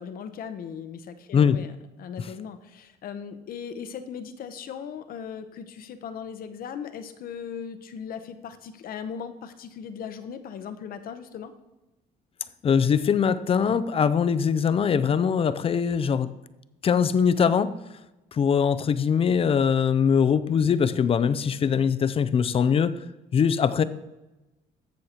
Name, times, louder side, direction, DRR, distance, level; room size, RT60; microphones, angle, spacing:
voice 1, 0.0-1.7 2.0-11.5, left 7 dB, 60° left, 10 dB, 0.8 m, -38 dB
voice 2, 12.6-16.3 16.8-17.7 18.3-23.0 23.3-23.8, left 7 dB, 35° left, 15 dB, 0.5 m, -22 dB
14.5 x 6.4 x 2.9 m, 1.0 s
cardioid pair, 110°, 17 cm